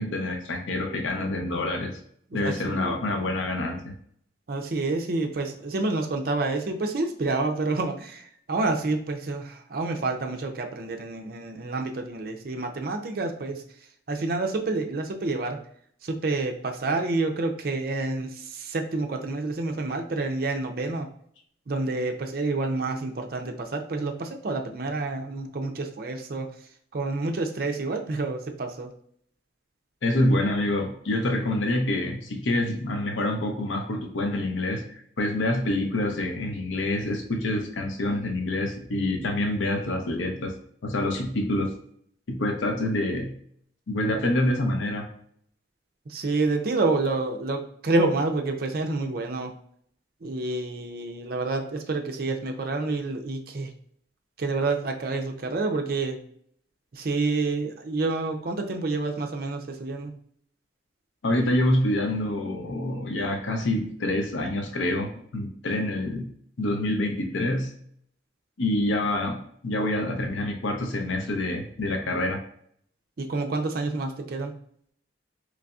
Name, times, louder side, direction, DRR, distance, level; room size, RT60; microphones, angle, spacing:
voice 1, 0.0-2.0 2.3-3.9 30.0-34.9 35.2-40.5 40.8-41.7 42.3-43.3 43.9-45.1 61.2-66.3 66.6-67.7 68.6-72.4, left 1 dB, 85° left, 3 dB, 0.6 m, -26 dB
voice 2, 2.3-3.0 4.5-13.6 14.1-15.6 16.0-21.1 21.7-26.5 26.9-28.9 46.1-49.5 50.2-53.7 54.4-56.2 56.9-60.1 73.2-74.5, right 3 dB, 50° right, 4 dB, 0.5 m, -28 dB
3.9 x 3.2 x 2.3 m, 0.65 s
head